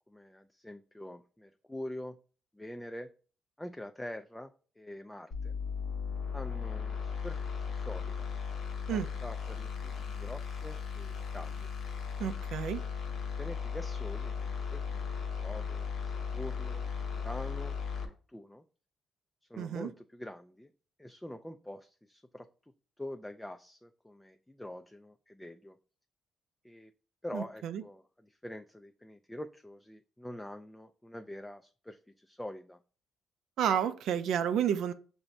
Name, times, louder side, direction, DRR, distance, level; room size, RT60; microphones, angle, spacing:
voice 1, 0.1-2.2 2.5-3.1 3.6-5.6 6.3-8.3 8.9-11.7 13.4-16.8 17.1-18.6 19.4-20.7 21.0-25.8 26.6-26.9 27.2-32.8, left 1 dB, 5° left, 0.3 m, -45 dB
sound 1, 5.3-18.1, left 6 dB, 65° left, 1.0 m, -36 dB
voice 2, 12.2-12.8 19.6-19.9 27.3-27.8 33.6-34.9, right 9 dB, 80° right, 0.3 m, -31 dB
5.9 x 2.6 x 3.2 m
cardioid pair, 90°, 0 cm